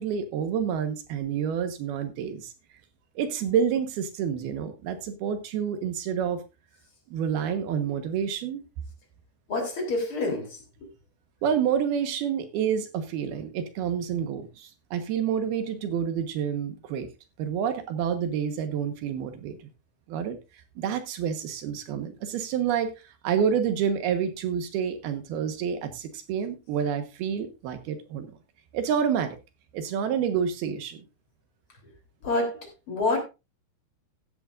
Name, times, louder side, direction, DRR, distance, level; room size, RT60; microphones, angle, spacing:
voice 1, 0.0-2.5 3.2-6.4 7.1-8.6 11.4-17.1 17.4-19.6 20.1-20.4 20.8-28.3 28.7-29.4 29.7-31.0, right 8 dB, 75° right, 3.1 m, -28 dB
voice 2, 9.5-10.6 32.2-33.2, left 2 dB, 35° left, 4.0 m, -27 dB
15.5 x 10.0 x 2.5 m
omnidirectional pair, 4.7 m